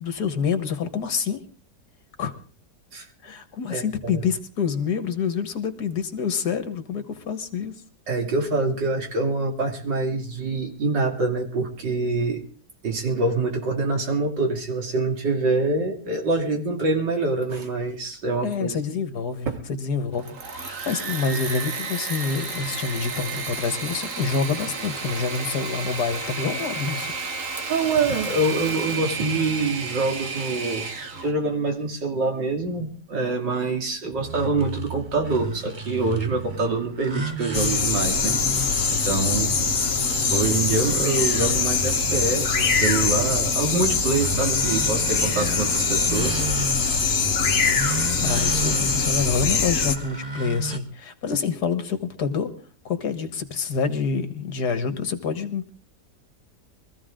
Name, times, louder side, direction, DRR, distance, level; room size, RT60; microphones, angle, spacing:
voice 1, 0.0-1.4 2.2-2.3 3.2-7.7 18.4-27.1 48.2-52.5 52.9-55.7, left 5 dB, 65° left, 9 dB, 2.0 m, -27 dB
voice 2, 8.1-12.4 12.8-18.7 19.5-19.6 27.7-30.9 31.2-38.4 38.9-39.6 40.3-46.4, right 3 dB, 85° right, 2 dB, 3.2 m, -25 dB
Engine / Mechanisms, 20.1-31.3, right 4 dB, 50° right, 1.9 m, -32 dB
sound 1, 34.1-50.8, right 2 dB, 25° right, 1.2 m, -34 dB
sound 2, 37.5-50.0, left 5 dB, 50° left, 1.8 m, -23 dB
23.5 x 14.5 x 3.8 m, 0.41 s
omnidirectional pair, 1.9 m